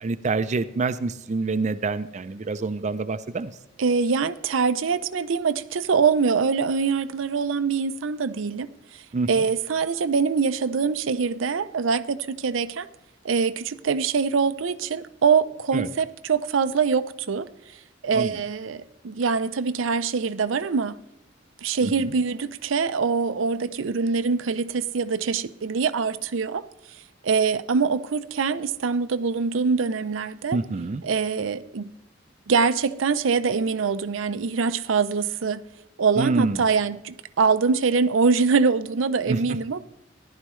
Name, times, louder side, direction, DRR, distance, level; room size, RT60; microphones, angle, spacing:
voice 1, 0.0-3.5 9.1-9.3 15.7-15.9 18.1-18.4 21.8-22.1 30.5-31.0 36.2-36.6 39.3-39.4, right 3 dB, 40° right, 0.4 m, -26 dB
voice 2, 3.8-8.7 9.3-12.9 13.2-17.5 18.0-21.0 21.6-26.6 27.2-30.6 31.0-31.9 32.5-35.6 36.0-39.8, right 5 dB, 90° right, 0.5 m, -24 dB
14.5 x 11.0 x 3.1 m
head